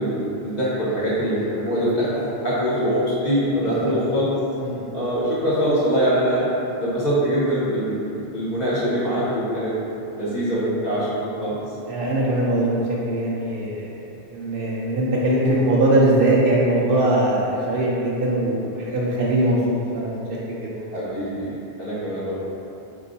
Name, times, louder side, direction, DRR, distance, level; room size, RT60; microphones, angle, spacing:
voice 1, 0.0-4.3 4.9-6.4 6.8-9.7 10.1-11.5 20.9-22.3, equal, 40° left, -11 dB, 1.2 m, -23 dB
voice 2, 3.6-3.9 4.6-4.9 11.9-12.8 13.1-14.0 14.3-20.2 20.6-21.0, right 1 dB, 65° right, -5 dB, 0.7 m, -21 dB
4.6 x 2.7 x 2.6 m, 3.0 s
omnidirectional pair, 1.1 m